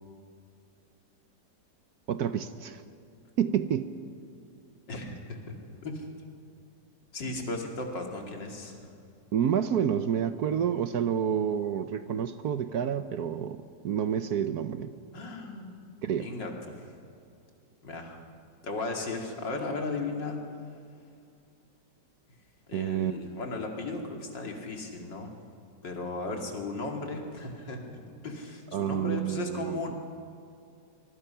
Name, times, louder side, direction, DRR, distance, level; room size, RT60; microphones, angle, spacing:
voice 1, 2.1-2.8 3.4-3.9 9.3-14.9 16.0-16.3 22.7-23.2 28.7-30.0, right 9 dB, 65° right, 11 dB, 1.1 m, -29 dB
voice 2, 4.9-5.5 5.8-6.1 7.1-8.9 15.1-15.7 16.2-16.9 17.8-18.2 18.6-20.4 22.7-25.3 25.8-30.0, left 3 dB, 75° left, 2 dB, 3.1 m, -36 dB
24.5 x 21.5 x 5.7 m, 2.4 s
omnidirectional pair, 2.0 m